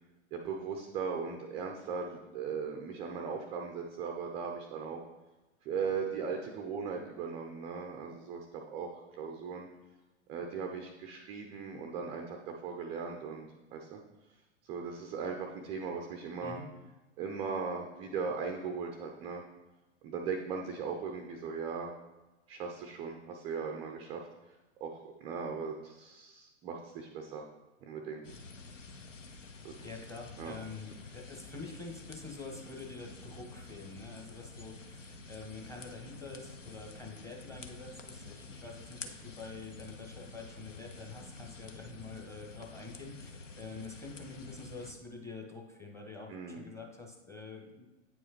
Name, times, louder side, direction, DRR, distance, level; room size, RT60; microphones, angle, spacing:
voice 1, 0.3-5.0 5.6-8.5 8.7-9.7 10.3-14.0 14.6-16.6 17.2-19.4 20.0-21.9 22.5-24.2 24.8-27.4 27.8-28.2 29.6-29.7 30.4-30.5 46.3-46.6, right 5 dB, 15° right, 3 dB, 0.3 m, -38 dB
sound 1, 28.2-44.9, left 3 dB, 85° left, 0.7 m, -49 dB
voice 2, 29.8-47.9, left 3 dB, 10° left, 1 dB, 1.0 m, -46 dB
8.5 x 4.7 x 2.9 m, 1.1 s
figure-of-eight pair, 100°, 36 cm